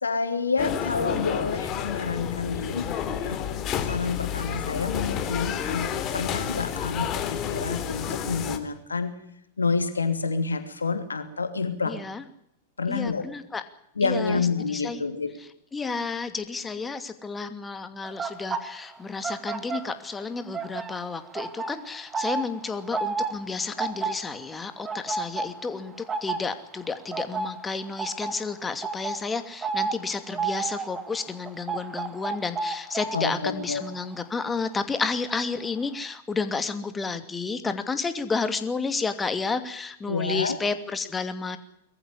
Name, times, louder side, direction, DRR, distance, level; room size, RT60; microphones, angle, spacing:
voice 1, 0.0-3.4 3.9-9.1 9.6-12.0 12.8-13.2 14.0-15.4 33.1-33.8 40.1-40.6, left 4 dB, 85° left, 8 dB, 2.9 m, -28 dB
sound 1, 0.6-8.6, left 9 dB, 35° left, 3.4 m, -30 dB
voice 2, 11.8-12.2 12.9-13.6 14.0-14.4 14.7-15.0 15.7-41.6, left 4 dB, 15° left, 9 dB, 2.6 m, -31 dB
sound 2, 18.0-20.2 20.5-35.4 35.7-36.0, right 4 dB, 20° right, 2.3 m, -33 dB
22.0 x 15.0 x 10.0 m, 0.74 s
hypercardioid pair, 100°, 0 cm